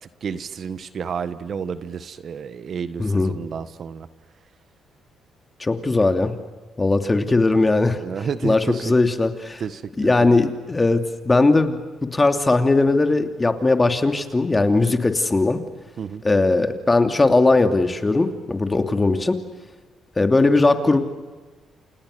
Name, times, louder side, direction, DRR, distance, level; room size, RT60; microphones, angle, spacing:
voice 1, 0.0-4.1 8.0-8.9 9.6-10.4 16.0-16.2, right 7 dB, 55° right, 13 dB, 1.4 m, -31 dB
voice 2, 3.0-3.3 5.6-6.4 6.8-8.0 8.4-9.6 10.0-11.8 12.1-15.6 16.2-19.4 20.2-21.0, left 3 dB, 20° left, 7 dB, 2.8 m, -19 dB
29.5 x 27.5 x 6.8 m, 1.3 s
cardioid pair, 90°, 0 cm